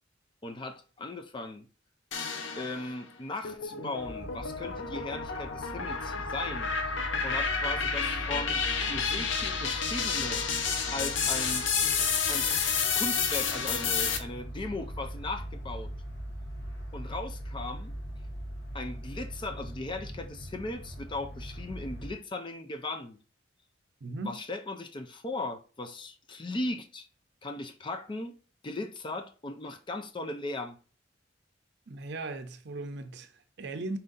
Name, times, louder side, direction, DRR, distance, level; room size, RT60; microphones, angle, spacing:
voice 1, 0.4-1.7 2.6-6.7 7.2-8.6 8.9-10.5 10.9-11.7 12.0-12.6 12.9-15.9 16.9-17.9 18.7-23.2 24.2-27.1 27.4-28.4 28.6-30.8, left 2 dB, 25° left, 0.5 m, -37 dB
sound 1, 2.1-3.0 3.4-14.2, left 6 dB, 90° left, 0.7 m, -30 dB
sound 2, 4.0-22.1, equal, 65° left, 1.0 m, -41 dB
voice 2, 24.0-24.4 31.9-34.0, right 2 dB, 65° right, 0.5 m, -38 dB
4.3 x 2.6 x 3.8 m
head